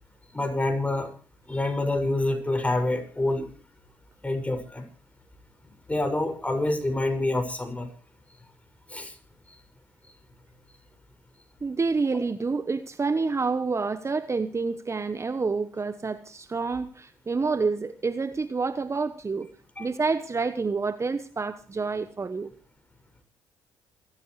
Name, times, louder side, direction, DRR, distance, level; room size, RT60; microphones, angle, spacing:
voice 1, 0.3-1.1 1.5-3.5 4.2-4.8 5.9-7.9 8.9-9.1 19.8-19.9, left 2 dB, 15° left, 6 dB, 6.4 m, -27 dB
voice 2, 11.6-19.5 19.8-22.5, right 4 dB, 30° right, 12 dB, 1.1 m, -28 dB
28.0 x 14.0 x 3.3 m, 0.37 s
hypercardioid pair, 50°, 9 cm